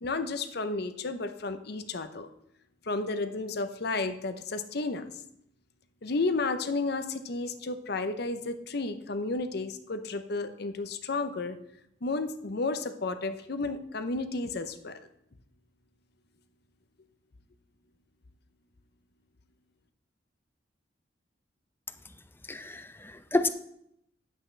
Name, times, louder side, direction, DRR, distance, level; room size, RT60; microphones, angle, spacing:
voice 1, 0.0-2.3 2.9-5.0 6.0-11.6 12.0-15.0, left 3 dB, 60° left, 10 dB, 0.7 m, -32 dB
voice 2, 22.5-23.5, left 2 dB, 10° left, 10 dB, 0.5 m, -29 dB
9.8 x 8.2 x 3.3 m, 0.75 s
head